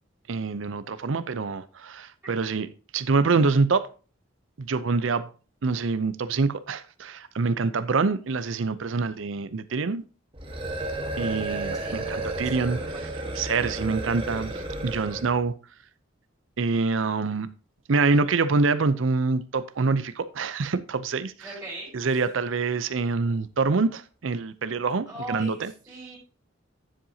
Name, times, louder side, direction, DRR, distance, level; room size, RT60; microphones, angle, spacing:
voice 1, 0.3-2.7 2.9-3.9 4.6-5.3 5.6-10.0 11.2-12.8 13.3-15.5 16.6-17.5 17.9-21.3 21.9-25.7, right 4 dB, 80° right, 0.6 m, -25 dB
sound 1, 10.3-15.4, right 2 dB, 25° right, 1.4 m, -32 dB
voice 2, 12.4-13.0 21.4-21.9 25.1-26.2, right 1 dB, 10° right, 4.3 m, -39 dB
10.0 x 7.6 x 2.8 m
head